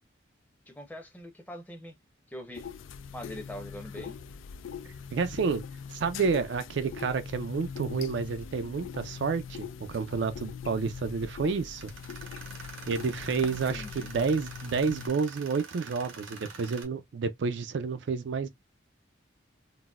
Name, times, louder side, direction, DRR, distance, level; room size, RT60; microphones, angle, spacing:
voice 1, 0.7-1.9 2.3-2.7 3.1-4.2 13.7-14.1, left 1 dB, 10° left, 0.7 m, -42 dB
sound 1, 2.5-15.1, left 7 dB, 85° left, 0.4 m, -42 dB
voice 2, 5.1-5.6 5.9-11.9 12.9-18.5, right 5 dB, 65° right, 0.4 m, -30 dB
Tools, 11.8-16.8, right 4 dB, 85° right, 0.9 m, -46 dB
3.9 x 2.1 x 2.3 m
head